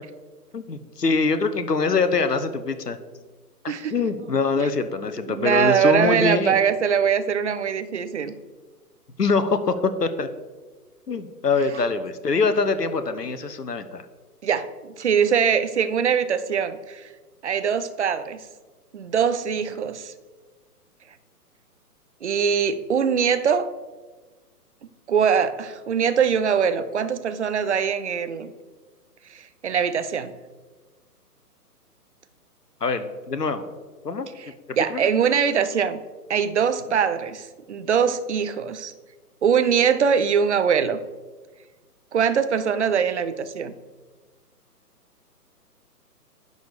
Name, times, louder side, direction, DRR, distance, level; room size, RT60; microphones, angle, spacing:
voice 1, 0.5-3.0 3.9-6.6 9.2-10.3 11.1-14.0 32.8-33.6 34.0-34.3 34.7-35.1, left 4 dB, 80° left, 11 dB, 1.0 m, -24 dB
voice 2, 5.3-8.3 14.4-17.1 17.4-18.4 18.9-20.1 22.2-23.7 25.1-28.5 29.3-30.4 34.4-34.5 34.8-36.0 36.3-38.9 39.4-41.0 42.1-43.7, right 7 dB, 45° right, 12 dB, 0.7 m, -22 dB
10.5 x 4.1 x 6.6 m, 1.3 s
figure-of-eight pair, 130°, 47 cm